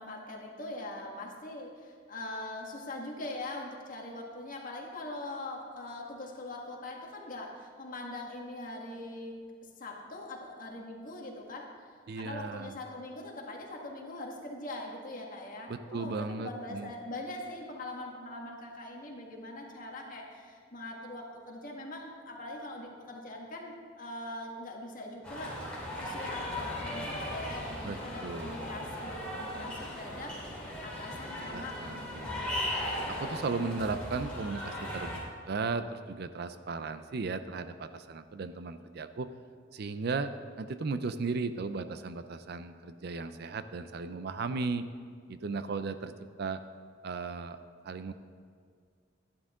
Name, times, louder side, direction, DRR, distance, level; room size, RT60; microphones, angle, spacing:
voice 1, 0.0-9.3 9.6-11.9 12.2-25.6 26.0-30.4 30.8-33.4, left 2 dB, 45° left, 0 dB, 1.6 m, -42 dB
voice 2, 12.1-12.7 15.7-16.9 27.8-28.6 31.5-32.4 33.2-39.3 39.7-40.3 40.6-44.8 45.3-46.1 46.4-46.6 47.0-47.6 47.8-48.1, right 4 dB, 55° right, 11 dB, 0.4 m, -36 dB
sound 1, 25.2-35.2, left 1 dB, 5° left, 2.6 m, -38 dB
12.0 x 11.0 x 3.7 m, 2.1 s
head